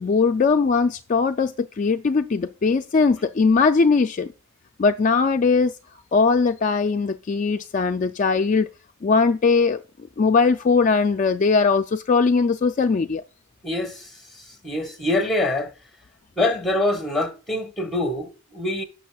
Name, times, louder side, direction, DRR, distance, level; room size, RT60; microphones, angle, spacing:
voice 1, 0.0-4.3 4.8-5.7 6.1-8.7 9.0-9.8 10.2-13.2, left 4 dB, 35° left, 0.3 m, -20 dB
voice 2, 13.6-14.1 14.6-15.7 16.4-18.8, left 1 dB, ahead, 1.5 m, -24 dB
16.5 x 6.1 x 2.3 m
head